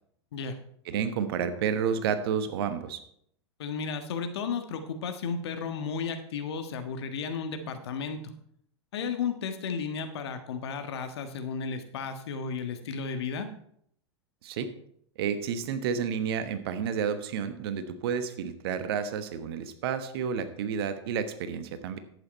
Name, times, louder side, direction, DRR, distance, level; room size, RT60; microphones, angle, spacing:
voice 1, 0.8-3.0 14.4-14.7 15.2-22.0, right 7 dB, 60° right, 10 dB, 1.1 m, -30 dB
voice 2, 3.6-8.2 8.9-13.5, left 5 dB, 65° left, 7 dB, 1.4 m, -33 dB
11.0 x 8.3 x 4.3 m, 0.69 s
figure-of-eight pair, 95°, 15 cm